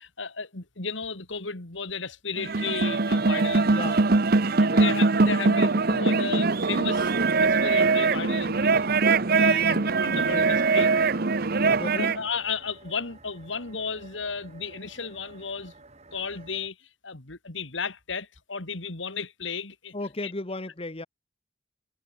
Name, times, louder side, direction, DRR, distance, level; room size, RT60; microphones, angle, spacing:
voice 1, 0.0-3.8 4.6-7.1 7.4-9.0 9.3-11.2 11.6-11.7 12.0-15.7 16.1-19.9 20.2-20.3, left 5 dB, 75° left, 2.5 m, -34 dB
sound 1, 2.4-12.2, right 3 dB, 50° right, 0.9 m, -22 dB
voice 2, 3.6-4.1 4.6-4.9 10.1-10.6 11.6-12.1 19.9-21.1, left 2 dB, 30° left, 1.2 m, -36 dB
sound 2, 6.5-16.7, right 2 dB, 35° right, 6.9 m, -50 dB
head